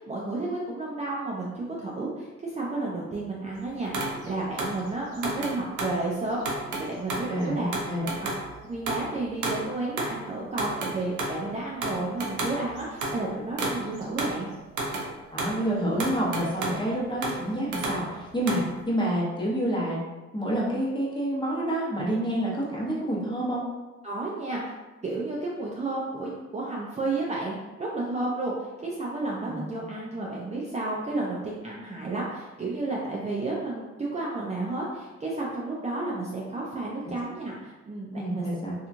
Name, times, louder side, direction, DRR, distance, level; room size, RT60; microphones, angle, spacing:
voice 1, 0.0-6.4 6.8-7.7 8.2-8.3 8.7-14.5 24.0-24.7 25.0-38.5, right 2 dB, 25° right, -5 dB, 0.4 m, -32 dB
sound 1, 3.9-6.0 6.4-9.7 10.0-10.2 10.5-11.4 11.8-13.2 13.6-14.4 14.7-15.6 16.0-16.8 17.2-18.7, right 2 dB, 75° right, 0.7 m, -32 dB
voice 2, 7.3-8.0 15.3-20.0 20.3-23.6 29.5-29.8 38.1-38.7, right 1 dB, 15° left, -5 dB, 0.9 m, -28 dB
2.9 x 2.4 x 2.5 m, 1.2 s
cardioid pair, 90°, 30 cm